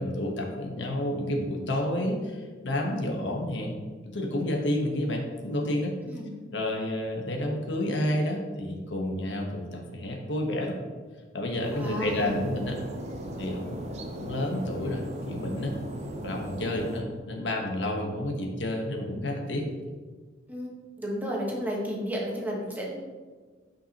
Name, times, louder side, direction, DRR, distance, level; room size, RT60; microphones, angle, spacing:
voice 1, 0.0-3.7 4.1-5.9 6.5-10.7 11.3-12.8 13.4-13.9 14.1-15.7 16.2-19.7, left 1 dB, 75° left, 1 dB, 1.1 m, -30 dB
sound 1, 11.6-17.0, right 1 dB, 40° right, 0.7 m, -37 dB
voice 2, 11.7-12.4 16.6-16.8 20.5-23.0, equal, 10° right, -3 dB, 1.2 m, -33 dB
8.8 x 5.5 x 2.9 m, 1.4 s
head